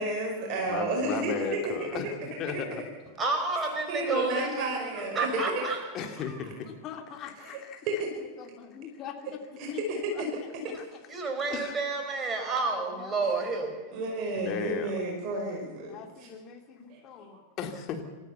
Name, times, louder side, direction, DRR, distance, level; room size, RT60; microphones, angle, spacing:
voice 1, 0.0-1.6 2.5-2.6 3.9-5.4 7.4-7.6 7.9-8.0 9.6-10.3 13.9-16.0 16.9-17.0, right 2 dB, 40° right, 0 dB, 5.3 m, -31 dB
voice 2, 0.6-2.8 5.9-7.9 8.4-10.2 10.6-10.8 11.5-11.8 12.4-13.5 14.3-15.0 15.9-18.0, left 6 dB, 35° left, 4 dB, 2.9 m, -38 dB
voice 3, 3.2-5.8 11.1-14.0, right 3 dB, 20° right, 3 dB, 5.0 m, -30 dB
28.0 x 14.0 x 7.1 m, 1.3 s
figure-of-eight pair, 90°, 0 cm